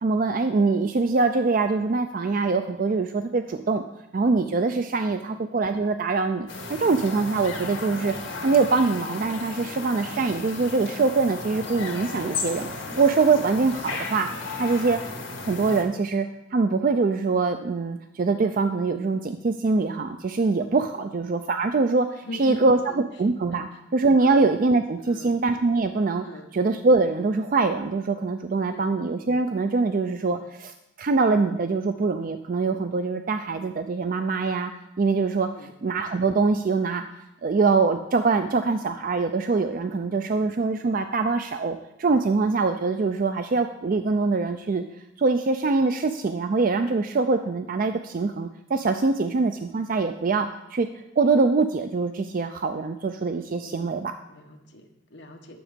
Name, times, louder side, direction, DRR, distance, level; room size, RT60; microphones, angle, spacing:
voice 1, 0.0-3.8 4.1-8.1 8.4-12.7 13.0-14.3 14.6-15.0 15.4-22.8 23.2-26.3 26.5-30.7 31.0-34.7 35.0-35.5 35.8-37.0 37.4-44.8 45.2-54.1, right 4 dB, 45° right, 8 dB, 0.4 m, -23 dB
sound 1, 6.5-15.8, left 3 dB, 80° left, 2.0 m, -34 dB
voice 2, 22.2-23.8 24.2-24.3 25.0-25.3 26.2-26.5 28.7-28.9 30.2-30.4 35.5-35.7 53.5-54.0 54.3-55.6, left 2 dB, 60° left, 4 dB, 1.3 m, -42 dB
10.0 x 7.2 x 5.1 m, 0.89 s
head